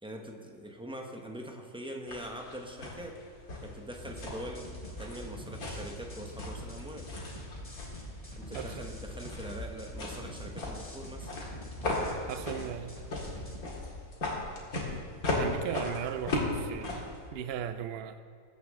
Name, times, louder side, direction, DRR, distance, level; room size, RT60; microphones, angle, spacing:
voice 1, 0.0-3.2 3.6-7.1 8.3-11.3, equal, 5° right, 2 dB, 0.8 m, -43 dB
sound 1, 2.1-17.3, left 2 dB, 70° left, 2.5 m, -37 dB
sound 2, 4.0-13.6, equal, 25° left, 1.9 m, -44 dB
voice 2, 12.3-13.0 14.9-15.1 15.4-17.1 17.3-18.2, right 9 dB, 80° right, 10 dB, 0.5 m, -37 dB
20.5 x 8.0 x 3.7 m, 2.3 s
omnidirectional pair, 1.6 m